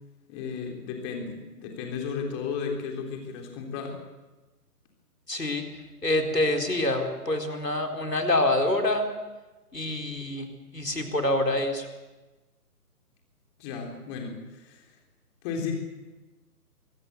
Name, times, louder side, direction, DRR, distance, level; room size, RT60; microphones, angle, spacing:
voice 1, 0.3-4.0 13.6-14.9 15.4-15.7, left 5 dB, 20° left, 2 dB, 3.4 m, -34 dB
voice 2, 5.3-5.6 6.0-9.1 9.7-10.5 10.7-11.9, left 1 dB, 85° left, 4 dB, 4.2 m, -26 dB
24.0 x 16.5 x 8.2 m, 1.2 s
figure-of-eight pair, 145°, 47 cm